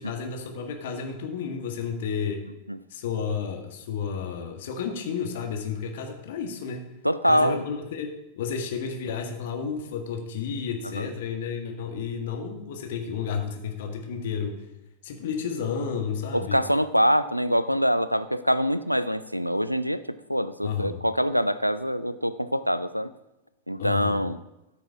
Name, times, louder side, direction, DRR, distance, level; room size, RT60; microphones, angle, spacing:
voice 1, 0.0-2.4 2.9-6.8 7.2-14.6 15.0-16.6 20.6-21.0 23.8-24.2, left 6 dB, 55° left, 4 dB, 1.6 m, -32 dB
voice 2, 7.0-7.6 11.0-11.1 16.3-20.0 20.3-23.1 23.7-24.4, equal, 90° right, 15 dB, 0.4 m, -24 dB
13.5 x 6.1 x 4.7 m, 0.94 s
figure-of-eight pair, 90°, 0 cm